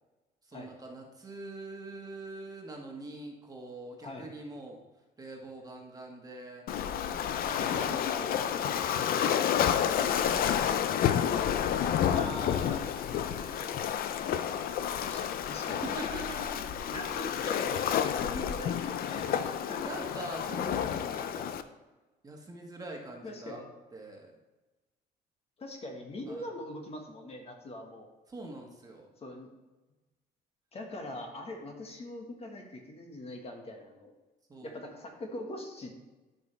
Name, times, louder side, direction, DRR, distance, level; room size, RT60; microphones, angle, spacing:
voice 1, 0.4-4.8 5.2-6.6 7.5-10.8 11.9-12.8 13.1-13.9 15.7-17.1 19.8-21.3 22.2-23.6 23.9-24.3 26.3-26.5 28.3-29.1 34.5-34.8, right 2 dB, 20° right, 0 dB, 1.6 m, -44 dB
Waves surf, 6.7-21.6, left 9 dB, 60° left, 0.6 m, -30 dB
voice 2, 7.4-7.9 11.3-12.8 15.0-15.8 16.9-20.1 21.3-21.5 23.2-23.7 25.6-28.1 29.2-29.5 30.7-34.1 34.6-35.9, left 1 dB, 35° left, 2 dB, 1.6 m, -42 dB
13.0 x 5.3 x 3.4 m, 1.1 s
cardioid pair, 110°, 17 cm